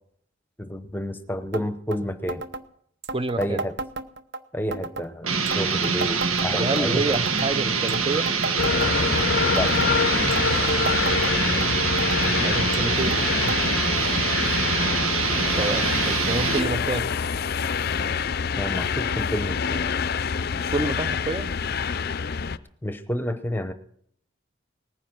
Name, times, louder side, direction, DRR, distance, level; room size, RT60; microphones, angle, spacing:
voice 1, 0.6-2.4 3.4-3.7 4.5-7.2 9.5-9.7 18.6-19.8 22.8-23.7, equal, 10° left, 10 dB, 0.9 m, -29 dB
sound 1, 1.5-1.7 1.9-2.0 2.3-2.6 3.0-4.4 4.7-5.1 5.5-6.8 7.1-7.5 7.9-9.3 9.6-9.9 10.3-11.7 12.0-12.4 12.7-13.2 13.5-13.6 13.9-14.0 14.7-14.8 15.6-15.7, right 3 dB, 55° right, 0.8 m, -33 dB
voice 2, 3.1-3.7 6.5-8.3 12.2-13.2 15.6-17.1 20.7-21.6, right 2 dB, 25° right, 13 dB, 0.6 m, -28 dB
sound 2, 5.2-16.7, right 5 dB, 85° right, 1.8 m, -25 dB
sound 3, 8.6-22.6, left 6 dB, 45° left, 0.5 m, -26 dB
19.5 x 9.9 x 6.1 m, 0.68 s
head